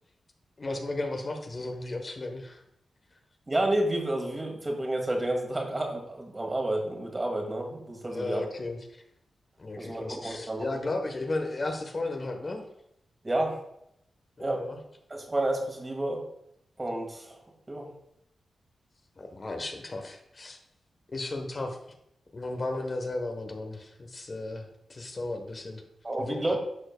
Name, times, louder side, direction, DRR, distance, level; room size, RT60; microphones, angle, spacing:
voice 1, 0.6-2.6 8.1-9.0 9.6-12.7 14.4-14.8 19.2-20.6 21.1-21.8 22.3-25.8 26.2-26.6, left 2 dB, 45° left, 4 dB, 1.0 m, -34 dB
voice 2, 3.5-8.4 9.8-10.7 13.2-13.6 14.4-14.6 15.1-16.2 16.8-17.4 17.7-17.8 26.0-26.6, right 1 dB, 30° right, 2 dB, 2.0 m, -30 dB
13.0 x 4.5 x 2.2 m, 0.77 s
supercardioid pair, 40°, 0 cm